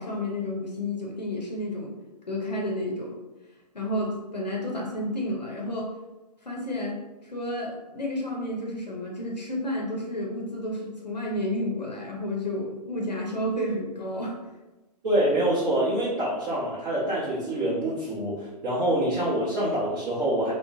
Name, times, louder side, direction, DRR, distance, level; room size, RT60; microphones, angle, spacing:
voice 1, 0.0-1.9 2.3-3.1 3.7-5.9 6.4-14.4, left 1 dB, 85° left, -1 dB, 0.7 m, -31 dB
voice 2, 15.0-20.5, right 1 dB, 30° right, -9 dB, 0.7 m, -26 dB
3.0 x 2.0 x 2.6 m, 1.1 s
figure-of-eight pair, 120°, 21 cm